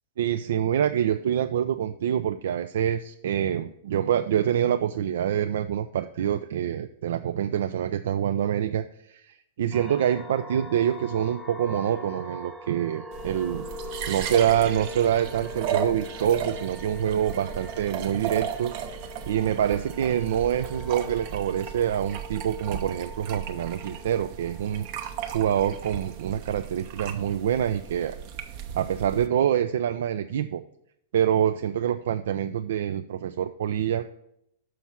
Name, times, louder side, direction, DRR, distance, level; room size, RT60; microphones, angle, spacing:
voice 1, 0.2-13.7 14.1-24.9 25.3-28.2 28.7-30.6 31.1-34.1, right 10 dB, 60° right, 8 dB, 0.3 m, -26 dB
sound 1, 9.7-26.2, left 1 dB, 10° right, 1.0 m, -43 dB
sound 2, 13.1-29.3, right 8 dB, 45° right, 0.7 m, -36 dB
6.3 x 5.5 x 5.7 m, 0.76 s
figure-of-eight pair, 100°, 0 cm